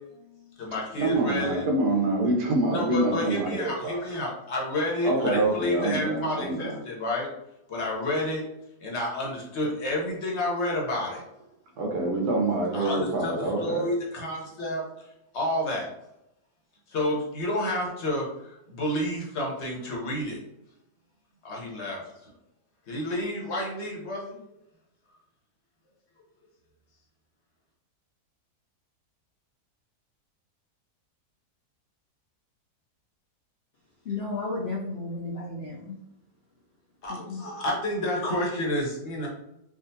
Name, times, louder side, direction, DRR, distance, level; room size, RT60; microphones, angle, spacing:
voice 1, 0.1-1.6 2.7-7.3 7.7-8.4 8.8-11.2 12.7-13.3 13.6-14.8 15.3-15.9 16.9-20.4 21.4-22.3 22.9-24.4 37.0-39.3, left 1 dB, 50° left, -2 dB, 1.0 m, -30 dB
voice 2, 1.0-4.3 5.0-6.8 11.8-13.9, right 2 dB, 80° right, 1 dB, 1.3 m, -26 dB
voice 3, 34.0-35.9 37.1-37.4, left 3 dB, 75° left, -3 dB, 0.6 m, -33 dB
3.7 x 2.4 x 2.7 m, 0.85 s
omnidirectional pair, 1.7 m